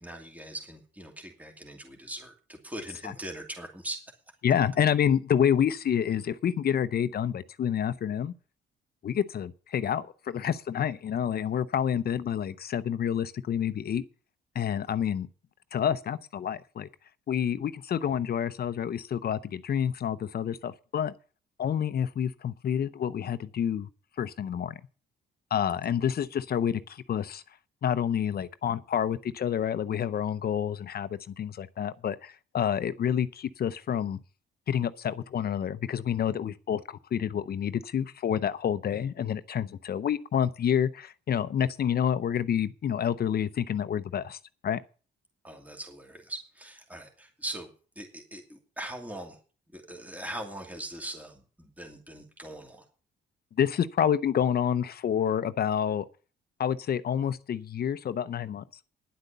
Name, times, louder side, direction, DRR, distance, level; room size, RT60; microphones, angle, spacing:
voice 1, 0.0-4.0 45.4-47.7 48.0-49.4 49.7-52.8, right 1 dB, 10° right, 2.6 m, -41 dB
voice 2, 4.4-8.3 9.0-14.0 14.5-15.3 15.7-16.9 17.3-21.1 21.6-23.9 24.2-24.8 25.5-27.4 27.8-34.2 34.7-44.8 53.6-56.1 56.6-58.6, left 9 dB, 50° left, 0.7 m, -28 dB
10.5 x 8.0 x 6.7 m
cardioid pair, 90°, 20 cm